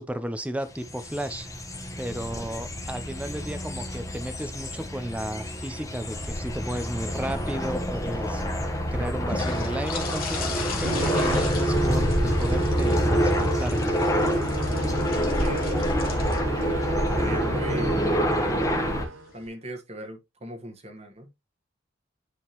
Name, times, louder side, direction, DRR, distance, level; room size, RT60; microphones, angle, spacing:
voice 1, 0.0-1.5 2.0-8.4 8.9-13.9, right 1 dB, 5° right, 0.5 m, -34 dB
sound 1, 0.7-19.0, equal, 15° left, 1.1 m, -27 dB
sound 2, 7.1-19.5, left 4 dB, 45° left, 1.4 m, -40 dB
Musical instrument, 10.8-19.3, right 2 dB, 65° right, 0.6 m, -33 dB
voice 2, 15.4-16.0 17.1-19.1 19.3-21.3, right 1 dB, 30° right, 1.4 m, -39 dB
9.8 x 3.7 x 3.0 m
head